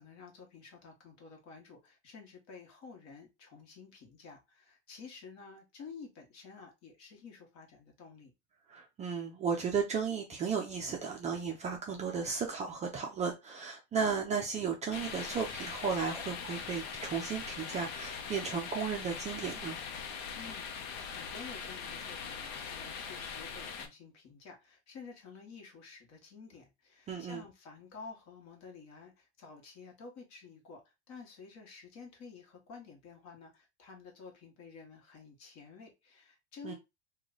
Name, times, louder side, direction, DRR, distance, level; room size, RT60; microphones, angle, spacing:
voice 1, 0.0-8.3 20.3-36.7, left 5 dB, 45° left, 1.4 m, -51 dB
voice 2, 8.7-19.8 27.1-27.4 36.6-36.7, right 6 dB, 20° right, 0.5 m, -34 dB
sound 1, 14.9-23.9, left 6 dB, 65° left, 0.8 m, -41 dB
3.1 x 2.3 x 3.8 m
supercardioid pair, 135°, 34 cm